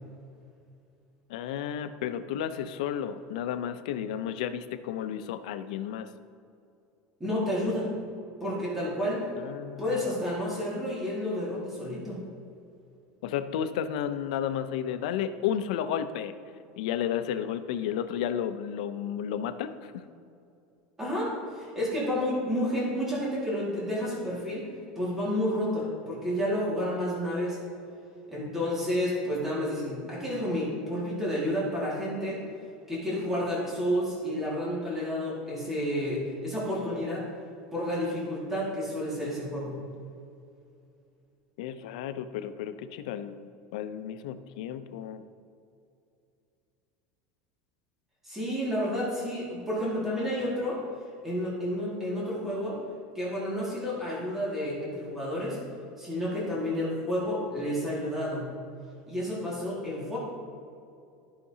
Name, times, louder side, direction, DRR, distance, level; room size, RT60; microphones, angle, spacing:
voice 1, 1.3-6.1 9.4-10.0 13.2-16.3 16.8-20.1 41.6-45.2, left 9 dB, 80° left, 10 dB, 0.6 m, -32 dB
voice 2, 7.2-7.9 8.4-9.2 9.8-12.2 21.0-24.7 25.0-27.6 28.3-32.4 32.9-37.3 37.7-39.8 48.2-50.8 51.2-52.8 53.2-55.6 56.0-58.5 59.1-60.2, equal, 10° right, -7 dB, 2.0 m, -30 dB
14.0 x 5.8 x 2.8 m, 2.5 s
supercardioid pair, 170°, 4 cm